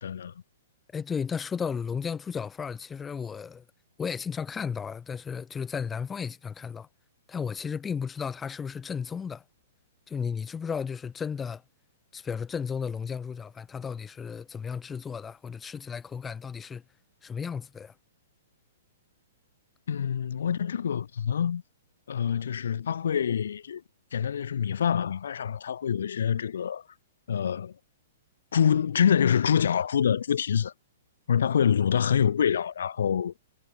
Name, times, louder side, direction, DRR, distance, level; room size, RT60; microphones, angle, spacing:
voice 1, 0.0-0.3 19.9-21.6 22.1-23.8 24.1-26.8 27.3-27.8 28.5-30.7 31.3-33.3, left 8 dB, 80° left, 0.6 m, -26 dB
voice 2, 0.9-3.6 4.0-6.9 7.3-9.4 10.1-11.6 12.1-16.8 17.2-17.9, left 6 dB, 15° left, 1.2 m, -34 dB
hypercardioid pair, 135°, 0 cm